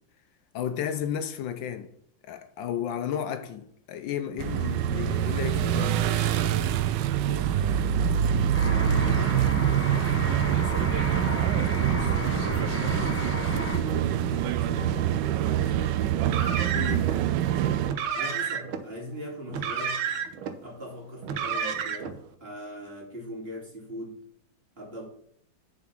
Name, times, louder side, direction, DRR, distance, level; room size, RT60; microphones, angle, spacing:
voice 1, 0.5-1.9 2.2-6.0 16.7-17.1, left 9 dB, 75° left, 1.3 m, -33 dB
sound 1, 4.4-17.9, right 10 dB, 75° right, 1.1 m, -25 dB
voice 2, 7.1-7.9 8.6-11.0 11.8-16.1 18.1-20.0 20.6-24.3 24.8-25.0, equal, 30° right, 2.8 m, -40 dB
sound 2, 8.5-13.8, left 1 dB, 15° left, 0.5 m, -32 dB
Car, 16.2-17.2 17.8-18.8 19.5-20.5 21.2-22.2, right 7 dB, 90° right, 1.7 m, -30 dB
7.2 x 5.0 x 5.9 m
omnidirectional pair, 2.2 m